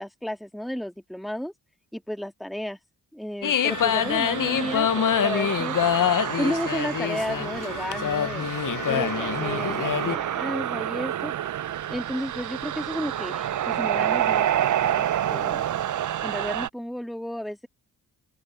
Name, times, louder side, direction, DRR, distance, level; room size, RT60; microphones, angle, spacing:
voice 1, 0.0-1.5 1.9-2.8 3.1-5.8 6.4-8.5 8.9-11.3 11.9-15.7 16.2-17.7, equal, ahead, 1.9 m, -33 dB
sound 1, 3.4-10.2, left 9 dB, 45° left, 0.9 m, -25 dB
sound 2, 3.7-16.7, right 11 dB, 40° right, 0.6 m, -28 dB
open air
hypercardioid pair, 40°, 45 cm